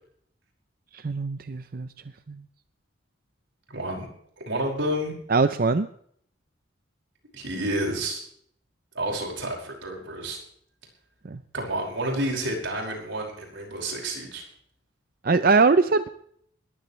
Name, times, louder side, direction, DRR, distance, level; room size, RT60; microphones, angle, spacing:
voice 1, 0.9-1.9 2.3-2.4 5.3-5.9 11.3-11.4 15.2-16.1, right 4 dB, 50° right, 11 dB, 0.6 m, -21 dB
voice 2, 3.7-4.1 4.5-5.2 7.3-8.3 8.9-10.4 11.5-14.4, right 1 dB, 75° right, 0 dB, 5.4 m, -30 dB
21.0 x 15.0 x 3.2 m, 0.64 s
head